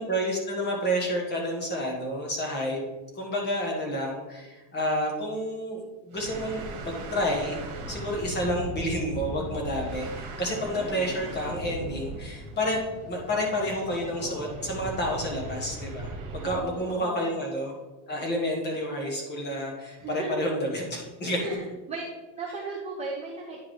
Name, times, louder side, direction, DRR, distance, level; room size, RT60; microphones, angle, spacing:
voice 1, 0.0-2.8 3.1-12.8 13.1-17.7 18.1-21.6, equal, 20° left, 0 dB, 1.2 m, -30 dB
sound 1, 6.1-16.6, right 2 dB, 40° right, 1.6 m, -38 dB
voice 2, 16.4-17.2 20.0-20.3 21.4-21.6 21.9-22.1 22.4-23.6, right 4 dB, 15° right, -3 dB, 0.4 m, -36 dB
9.9 x 4.8 x 3.1 m, 1.1 s
cardioid pair, 175°, 49 cm